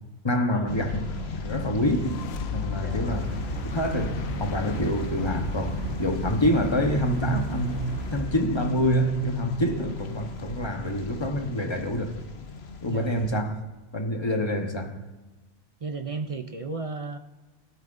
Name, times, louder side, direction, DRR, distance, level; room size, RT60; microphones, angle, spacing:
voice 1, 0.2-1.0 1.4-2.2 2.5-3.4 3.6-12.2 12.8-13.6 13.9-15.0, equal, 20° left, 1.0 m, -26 dB
sound 1, 0.7-13.4, left 2 dB, 55° left, 1.1 m, -35 dB
sound 2, 1.6-7.0, left 9 dB, 85° left, 1.0 m, -38 dB
voice 2, 2.7-3.1 12.9-13.1 15.8-17.2, right 4 dB, 55° right, 0.4 m, -34 dB
sound 3, 3.0-8.2, right 4 dB, 10° right, 2.7 m, -36 dB
15.5 x 12.5 x 2.6 m
omnidirectional pair, 1.4 m